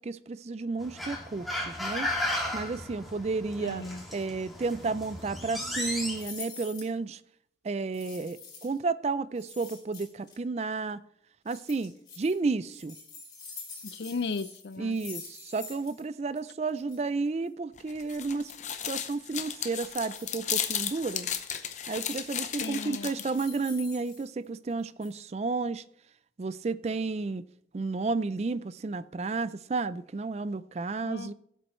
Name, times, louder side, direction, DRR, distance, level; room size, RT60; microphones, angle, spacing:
voice 1, 0.0-2.1 2.5-3.8 4.1-7.2 7.6-11.0 11.5-13.0 14.8-18.5 18.9-21.3 21.9-25.8 26.4-27.4 27.7-31.3, right 3 dB, 35° right, 16 dB, 0.4 m, -32 dB
sound 1, 0.8-6.2, left 1 dB, ahead, 2.1 m, -35 dB
voice 2, 3.6-4.0 13.8-15.0 22.6-23.1 31.0-31.3, left 4 dB, 75° left, 16 dB, 0.5 m, -35 dB
sound 2, 6.1-6.9 7.9-8.8 9.4-10.3 11.5-12.3 12.7-16.0 16.3-16.4 16.7-17.0 18.1-19.1 20.1-20.3 20.7-21.4 21.8-22.4 23.1-24.7 25.0-25.1, left 4 dB, 25° left, 3.5 m, -46 dB
sound 3, 17.8-23.5, left 9 dB, 40° left, 0.8 m, -34 dB
16.5 x 7.8 x 3.1 m, 0.71 s
head